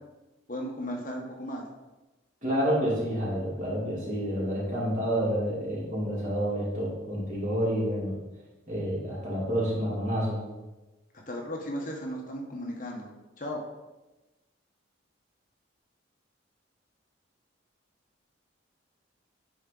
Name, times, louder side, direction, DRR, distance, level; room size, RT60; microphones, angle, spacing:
voice 1, 0.5-1.6 11.3-13.1 13.4-13.6, equal, 40° left, 0 dB, 1.1 m, -35 dB
voice 2, 2.4-8.2 8.7-10.4, equal, 40° right, -6 dB, 2.6 m, -29 dB
9.6 x 4.6 x 3.8 m, 1.1 s
head